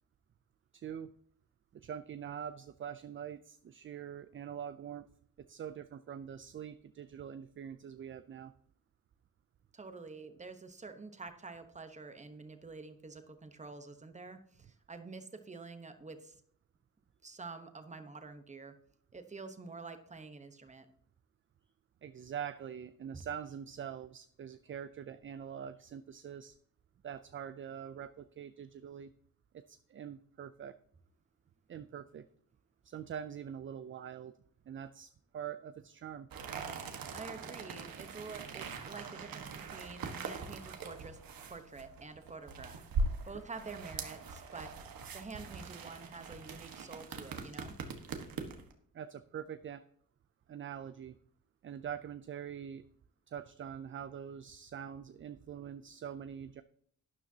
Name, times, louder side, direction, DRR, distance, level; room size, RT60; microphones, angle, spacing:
voice 1, 0.7-1.1 1.7-5.1 5.4-8.5 22.0-26.6 27.0-29.1 29.5-30.8 31.7-32.2 32.8-34.3 34.7-36.3 48.9-49.8 50.5-51.2 51.6-52.8 53.3-56.6, right 8 dB, 35° right, 12 dB, 0.4 m, -44 dB
voice 2, 9.7-16.3 17.2-18.8 19.1-20.9 37.1-42.9 43.2-44.8 45.1-47.7, right 4 dB, 20° right, 8 dB, 1.0 m, -48 dB
sound 1, 36.3-48.7, right 4 dB, 80° right, 1.5 m, -41 dB
12.0 x 9.9 x 2.8 m, 0.63 s
wide cardioid pair, 160°, 34 cm